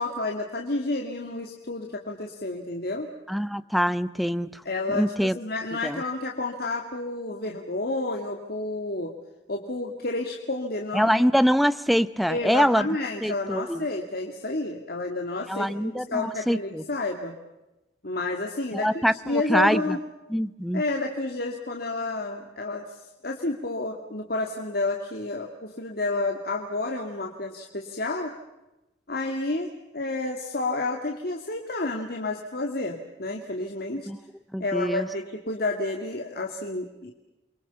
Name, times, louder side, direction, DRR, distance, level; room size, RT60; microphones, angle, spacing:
voice 1, 0.0-3.1 4.6-9.2 9.5-11.3 12.3-17.4 18.0-20.0 20.7-28.3 29.1-34.1 34.6-37.1, left 2 dB, 55° left, 3 dB, 2.3 m, -30 dB
voice 2, 3.3-4.6 4.9-5.4 5.8-6.0 10.9-12.9 13.2-13.8 15.5-16.8 18.7-20.0 20.3-20.8 34.1-34.2 34.5-35.1, equal, ahead, 14 dB, 0.8 m, -24 dB
29.0 x 24.0 x 7.0 m, 0.99 s
head